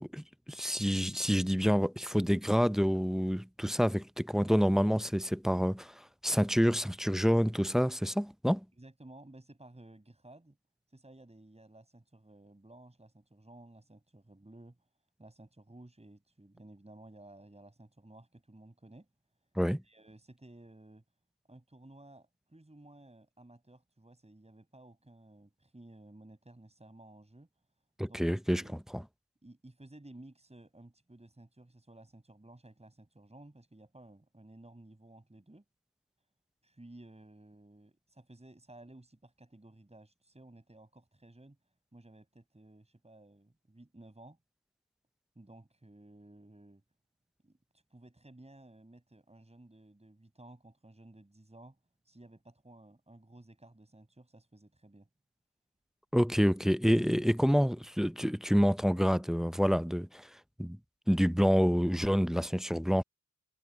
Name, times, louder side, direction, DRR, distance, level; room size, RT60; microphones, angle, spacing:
voice 1, 0.0-5.9 6.2-8.6 19.6-19.8 28.0-28.6 28.9-29.0 56.1-60.3 60.6-60.8 61.1-63.0, equal, ahead, 0.6 m, -28 dB
voice 2, 8.8-10.6 10.9-14.9 15.2-19.1 19.8-21.0 21.5-27.5 28.0-28.3 28.6-28.8 29.4-35.6 36.6-41.6 41.9-44.4 45.3-46.8 47.4-51.8 52.0-55.1, right 1 dB, 20° right, 6.5 m, -55 dB
cardioid pair, 45°, 33 cm